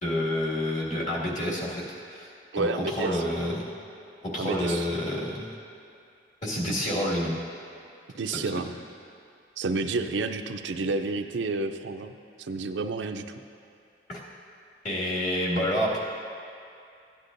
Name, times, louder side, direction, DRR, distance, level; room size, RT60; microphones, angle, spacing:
voice 1, 0.0-2.3 2.6-3.7 4.2-5.6 6.4-7.4 8.5-8.7 14.1-14.2 14.8-16.0, left 1 dB, 45° left, -6 dB, 2.1 m, -28 dB
voice 2, 2.5-3.2 4.4-4.9 8.2-8.7 9.6-12.1 12.4-13.2, right 3 dB, 85° right, 7 dB, 0.5 m, -30 dB
15.5 x 9.8 x 2.6 m, 2.5 s
head